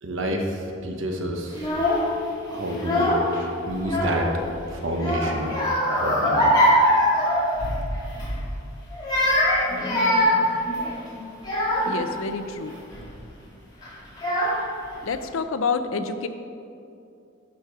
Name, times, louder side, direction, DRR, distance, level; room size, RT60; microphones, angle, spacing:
voice 1, 0.0-1.7 2.5-3.1 3.6-4.3 4.7-5.6 6.0-6.5, right 1 dB, 70° right, 2 dB, 1.1 m, -28 dB
Child speech kid speaking / Crying sobbing, 1.5-2.1 2.7-3.4 3.7-4.5 5.0-7.8 8.1-8.4 8.9-12.0 12.7-13.0 13.8-13.9 14.2-14.9, equal, 20° left, 1.9 m, -22 dB
voice 2, 11.9-12.7 15.1-16.3, left 4 dB, 80° left, 9 dB, 0.5 m, -28 dB
11.0 x 5.0 x 4.7 m, 2.6 s
head